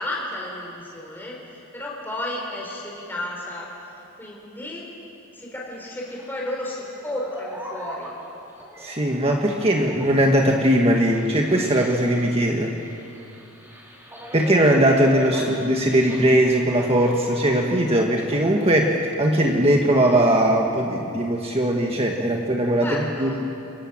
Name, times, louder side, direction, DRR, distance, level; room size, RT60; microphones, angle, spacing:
voice 1, 0.0-3.7 4.2-4.8 5.3-8.1 15.3-15.4 22.8-23.4, left 1 dB, 10° left, -3 dB, 4.0 m, -32 dB
sound 1, 6.0-18.0 18.3-20.2, equal, 10° right, 4.3 m, -40 dB
voice 2, 8.8-12.7 14.3-23.3, right 1 dB, 25° right, 1 dB, 1.7 m, -20 dB
28.5 x 24.0 x 7.5 m, 2.8 s
head